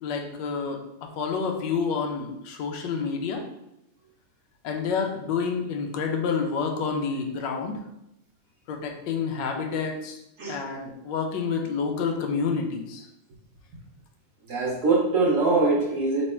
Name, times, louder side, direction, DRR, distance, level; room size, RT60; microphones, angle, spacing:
voice 1, 0.0-3.4 4.6-7.7 8.7-10.2 10.5-13.0, left 5 dB, 70° left, 3 dB, 1.1 m, -29 dB
voice 2, 14.5-16.2, right 3 dB, 60° right, -3 dB, 0.8 m, -23 dB
3.3 x 3.1 x 4.2 m, 0.84 s
omnidirectional pair, 2.4 m